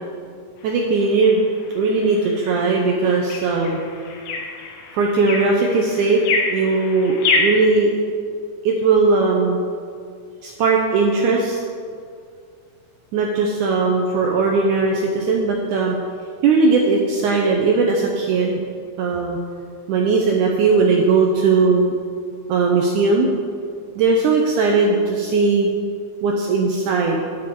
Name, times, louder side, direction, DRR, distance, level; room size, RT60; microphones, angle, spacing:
sound 1, 0.6-7.6, left 4 dB, 85° left, 2.9 m, -27 dB
voice 1, 0.6-1.4 1.8-3.8 4.9-6.2 6.5-8.0 8.7-9.6 10.4-11.6 13.1-16.0 16.4-18.6 19.0-19.4 19.9-22.0 22.5-23.3 24.0-25.7 26.2-27.4, right 4 dB, 85° right, 0 dB, 1.7 m, -18 dB
10.0 x 7.2 x 4.6 m, 2.2 s
omnidirectional pair, 4.3 m